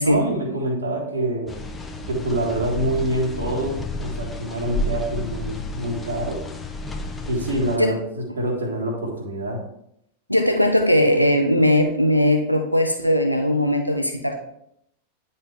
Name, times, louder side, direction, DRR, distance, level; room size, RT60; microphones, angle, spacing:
voice 1, 0.0-1.6 2.1-6.5 7.3-9.7, right 1 dB, 70° right, 0 dB, 1.5 m, -26 dB
sound 1, 1.5-7.8, left 2 dB, 15° left, 0.7 m, -31 dB
voice 2, 10.3-14.4, left 1 dB, 90° left, 4 dB, 0.6 m, -19 dB
9.4 x 4.2 x 3.3 m, 0.74 s
figure-of-eight pair, 90°, 0 cm